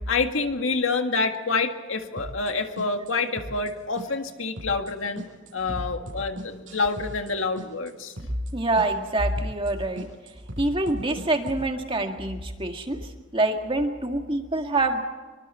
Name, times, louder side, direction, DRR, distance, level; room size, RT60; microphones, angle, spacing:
voice 1, 0.1-5.2 5.5-8.1, left 4 dB, 85° left, 5 dB, 1.9 m, -27 dB
sound 1, 2.2-2.5 2.8-3.7 4.0-4.3 4.6-4.9 5.2-7.3 7.6-7.9 8.2-8.5 8.8-9.1 9.4-9.7 10.0-11.7, equal, 70° right, 6.8 m, -37 dB
voice 2, 8.5-10.1 10.6-15.0, right 2 dB, 25° right, 4 dB, 2.0 m, -26 dB
25.0 x 24.5 x 4.4 m, 1.4 s
head